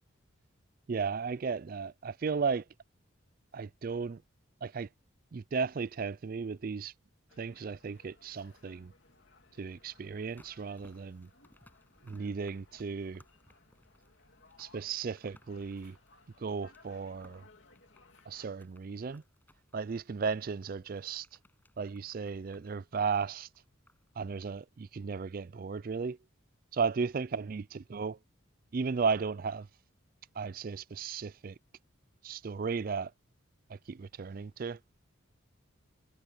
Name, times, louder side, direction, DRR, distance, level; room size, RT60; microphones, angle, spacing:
voice 1, 0.9-2.6 3.5-4.2 4.6-4.9 5.3-6.9 7.4-8.9 9.6-11.3 12.0-13.2 14.6-16.0 16.4-17.4 18.3-19.2 19.7-21.3 21.8-23.5 24.2-26.2 26.7-28.2 28.7-29.7 30.4-31.6 32.2-33.1 33.7-34.8, right 5 dB, 45° right, 0.4 m, -35 dB
sound 1, 7.3-18.5, left 3 dB, 65° left, 3.0 m, -63 dB
sound 2, 10.1-24.1 24.4-24.5, left 1 dB, 10° left, 7.3 m, -65 dB
head